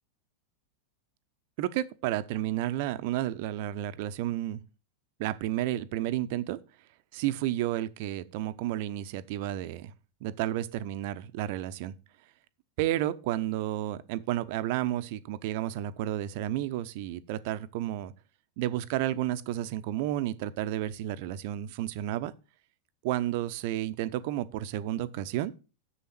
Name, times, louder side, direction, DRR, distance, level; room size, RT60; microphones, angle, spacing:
voice 1, 1.6-4.6 5.2-6.6 7.1-9.9 10.2-11.9 12.8-18.1 18.6-22.3 23.0-25.5, right 13 dB, 50° right, 0.7 m, -31 dB
7.1 x 7.0 x 5.9 m
figure-of-eight pair, 90°, 0 cm